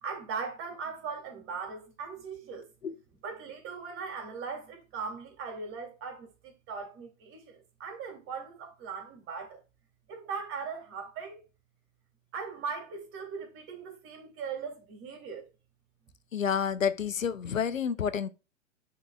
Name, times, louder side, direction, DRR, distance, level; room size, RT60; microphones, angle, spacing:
voice 1, 0.0-2.7 3.2-9.6 10.1-11.4 12.3-15.5, right 5 dB, 35° right, 2.7 m, -39 dB
voice 2, 16.3-18.3, left 7 dB, 85° left, 0.7 m, -29 dB
11.5 x 4.1 x 2.3 m
figure-of-eight pair, 105°, 39 cm